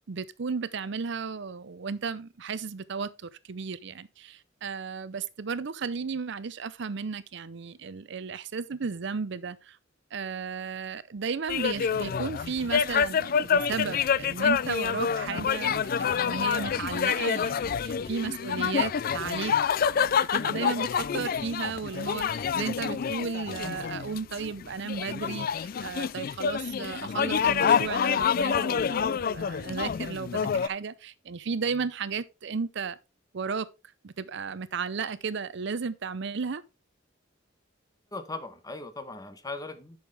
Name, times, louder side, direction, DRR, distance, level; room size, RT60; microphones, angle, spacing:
voice 1, 0.0-9.8 10.1-33.0 33.3-33.7 34.0-36.6, right 5 dB, 65° right, 0.6 m, -34 dB
sound 1, 11.5-30.7, left 7 dB, 50° left, 0.4 m, -27 dB
voice 2, 38.1-40.0, left 3 dB, 20° left, 1.3 m, -38 dB
10.5 x 6.3 x 3.4 m
head